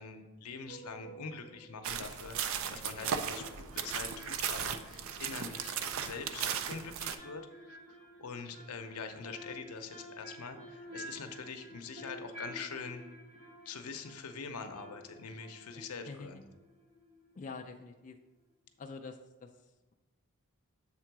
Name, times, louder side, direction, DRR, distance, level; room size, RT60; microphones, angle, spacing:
voice 1, 0.0-13.0 13.7-16.5, left 5 dB, 85° left, 6 dB, 0.7 m, -44 dB
sound 1, 0.7-1.9 3.0-17.5 17.8-17.9, equal, 80° right, 1.6 m, -51 dB
sound 2, 1.8-7.2, right 7 dB, 65° right, 0.4 m, -36 dB
sound 3, 3.0-5.4, right 1 dB, 40° right, 0.9 m, -58 dB
voice 2, 15.7-16.4 17.3-18.2 18.8-19.9, left 4 dB, 35° left, 3 dB, 0.4 m, -47 dB
7.3 x 3.8 x 4.6 m, 1.1 s
head